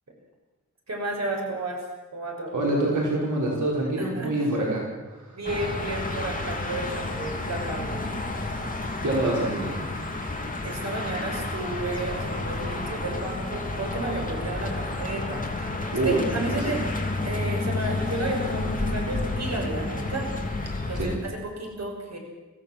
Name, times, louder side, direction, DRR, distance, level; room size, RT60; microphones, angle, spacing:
voice 1, 0.9-1.9 2.1-2.5 4.0-4.4 5.3-8.0 10.6-16.8 17.2-20.3 20.9-22.2, right 2 dB, 60° right, 1 dB, 6.2 m, -32 dB
voice 2, 2.5-5.4 9.0-9.7 15.9-16.2 16.7-16.8 20.9-21.1, right 2 dB, 75° right, -3 dB, 5.3 m, -26 dB
sound 1, 5.4-21.2, left 2 dB, 25° left, 3.2 m, -30 dB
26.0 x 16.5 x 7.6 m, 1.2 s
wide cardioid pair, 100°, 30 cm